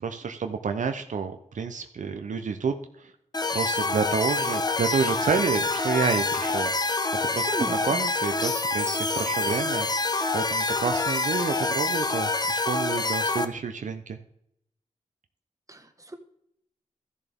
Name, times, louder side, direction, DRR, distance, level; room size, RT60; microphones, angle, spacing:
voice 1, 0.0-3.1 3.5-6.9 7.3-9.9 10.3-14.2, right 5 dB, 70° right, 7 dB, 0.6 m, -29 dB
sound 1, 3.3-13.5, left 3 dB, 30° left, 0.8 m, -26 dB
voice 2, 7.5-8.0 15.7-16.2, right 2 dB, 25° right, 6 dB, 1.3 m, -34 dB
14.0 x 6.9 x 3.5 m, 0.76 s
cardioid pair, 60°, 13 cm